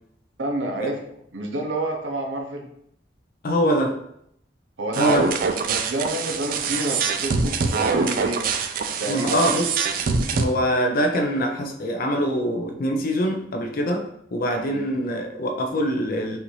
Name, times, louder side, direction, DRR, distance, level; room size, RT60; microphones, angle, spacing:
voice 1, 0.4-1.0 1.3-2.7 4.8-5.2 5.6-8.5 9.0-9.6 14.7-14.8, right 2 dB, 85° right, 2 dB, 0.7 m, -28 dB
voice 2, 3.4-4.0 5.0-5.2 9.1-9.7 10.3-16.4, equal, 50° left, 4 dB, 0.5 m, -24 dB
sound 1, 4.9-10.4, right 5 dB, 50° right, 0.4 m, -24 dB
5.5 x 2.6 x 3.1 m, 0.74 s
head